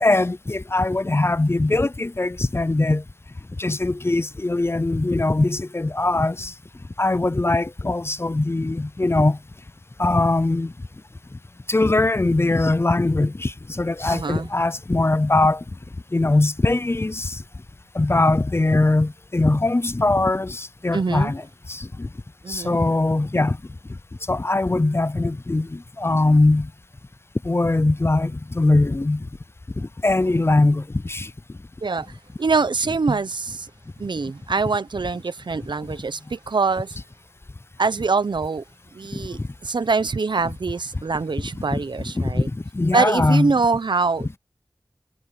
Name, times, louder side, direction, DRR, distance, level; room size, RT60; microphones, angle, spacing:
voice 1, 0.0-3.0 3.6-6.5 7.0-9.4 10.0-10.7 11.7-15.6 16.1-17.4 17.9-21.4 21.7-22.1 22.5-23.6 24.3-26.7 27.4-29.3 29.8-31.3 39.1-39.2 41.5-41.8 42.1-42.4 42.7-43.5, left 2 dB, 35° left, 0.5 m, -21 dB
voice 2, 14.1-14.5 20.9-21.3 22.4-22.8 31.8-32.1 32.4-33.7 34.0-37.0 37.8-38.6 38.9-42.5 42.9-44.4, right 4 dB, 85° right, 0.8 m, -24 dB
wide cardioid pair, 60°, 8 cm